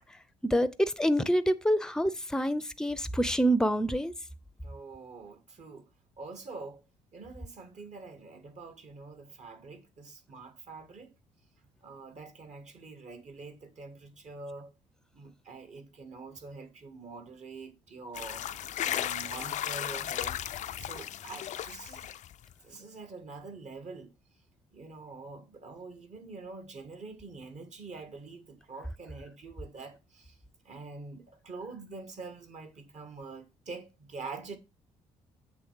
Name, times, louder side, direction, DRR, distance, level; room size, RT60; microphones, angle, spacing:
voice 1, 0.4-4.1, equal, 5° left, 0.6 m, -27 dB
voice 2, 4.6-5.9 6.2-6.8 7.1-11.1 11.8-14.7 15.1-18.5 18.8-20.4 20.8-22.1 22.6-24.1 24.7-30.4 30.6-34.6, right 3 dB, 50° right, 1.7 m, -45 dB
sound 1, 18.1-22.5, left 11 dB, 50° left, 0.4 m, -35 dB
7.8 x 3.2 x 4.7 m
hypercardioid pair, 50°, 16 cm